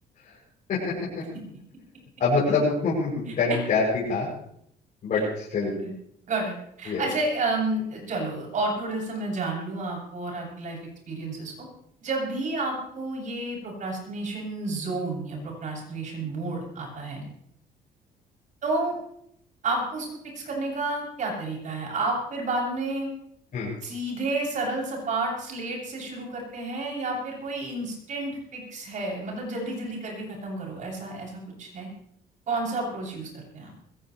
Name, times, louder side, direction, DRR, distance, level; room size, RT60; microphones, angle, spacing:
voice 1, 0.7-1.2 2.2-4.3 5.0-5.7 6.9-7.1 23.5-23.7, left 3 dB, 50° left, -8 dB, 7.3 m, -25 dB
voice 2, 5.6-5.9 6.3-10.8 11.1-11.7 12.0-17.2 18.6-18.9 19.6-20.1 20.3-23.1 23.8-31.9 32.5-33.7, right 2 dB, 50° right, -1 dB, 7.5 m, -30 dB
21.0 x 16.5 x 3.3 m, 0.71 s
cardioid pair, 110°, 17 cm